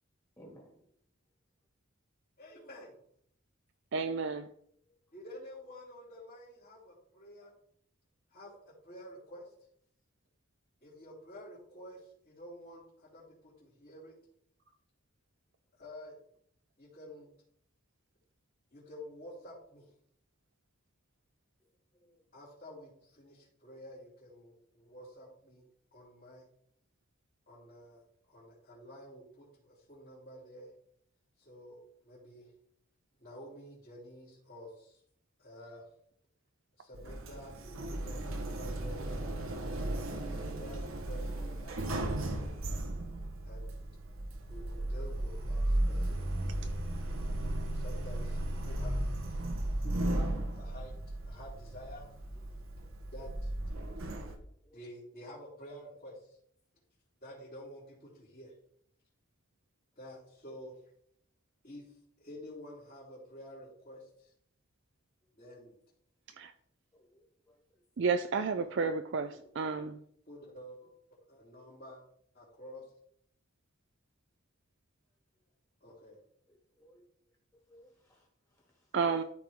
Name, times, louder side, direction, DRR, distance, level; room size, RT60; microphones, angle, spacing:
voice 1, 0.4-0.8 4.9-5.0 22.0-22.2 54.6-54.8 66.9-67.6 76.5-77.1 77.7-78.3, equal, 15° left, -1 dB, 2.1 m, -59 dB
voice 2, 2.4-3.0 5.1-7.5 8.3-9.5 10.8-14.1 15.8-16.1 16.8-17.3 18.7-19.8 22.3-25.6 25.9-26.4 27.5-28.0 28.3-30.7 31.4-31.8 32.0-32.5 33.2-35.0 35.4-35.8 36.8-39.2 39.6-41.8 43.5-43.8 44.5-46.5 47.6-49.1 49.8-51.0 51.2-52.0 53.1-53.5 54.7-56.4 57.2-58.5 60.0-60.7 61.6-61.8 62.2-64.3 65.3-65.7 70.3-70.9 71.3-72.0 72.3-72.8 75.8-76.2, equal, 40° left, -9 dB, 2.9 m, -50 dB
voice 3, 3.9-4.5 66.4-66.5 68.0-70.0 78.9-79.2, right 5 dB, 60° right, 9 dB, 0.4 m, -31 dB
Sliding door, 36.9-54.4, right 1 dB, 85° right, 1.2 m, -35 dB
12.5 x 4.8 x 3.6 m, 0.67 s
head